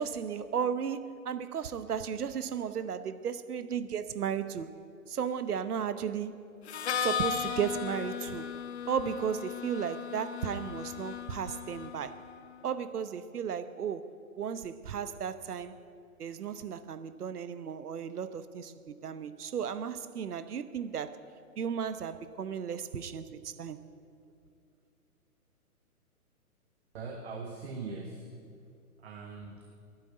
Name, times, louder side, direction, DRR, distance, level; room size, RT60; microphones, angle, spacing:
voice 1, 0.0-4.7 5.1-6.4 7.0-8.5 8.9-12.2 12.6-15.7 16.2-21.2 21.6-23.8, right 7 dB, 80° right, 13 dB, 1.0 m, -34 dB
Harmonica, 6.7-12.4, left 8 dB, 45° left, 0.7 m, -36 dB
voice 2, 26.9-28.4 29.0-29.7, right 4 dB, 45° right, 3 dB, 1.3 m, -41 dB
11.5 x 9.9 x 9.0 m, 2.4 s
hypercardioid pair, 155°, 45 cm